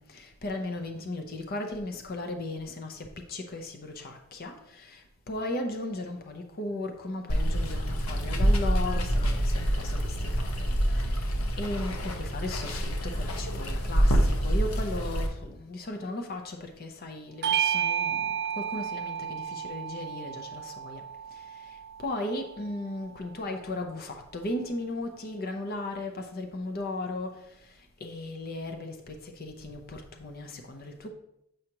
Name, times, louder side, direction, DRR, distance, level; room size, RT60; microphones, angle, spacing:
voice 1, 0.0-10.5 11.2-21.0 22.0-27.4 28.0-31.1, left 2 dB, 45° left, 4 dB, 0.6 m, -36 dB
Water, 7.3-15.3, equal, 70° left, 0.8 m, -26 dB
Bell / Doorbell, 17.4-22.3, right 9 dB, 50° right, 0.4 m, -31 dB
7.6 x 4.8 x 2.9 m, 0.80 s
head